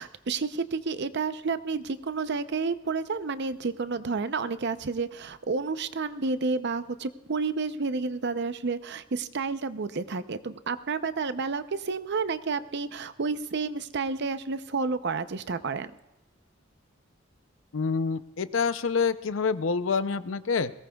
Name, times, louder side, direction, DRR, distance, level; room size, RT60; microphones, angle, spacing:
voice 1, 0.0-15.9, right 4 dB, 60° right, 12 dB, 0.7 m, -30 dB
voice 2, 17.7-20.7, left 5 dB, 75° left, 13 dB, 0.6 m, -27 dB
21.5 x 18.0 x 2.3 m, 1.0 s
head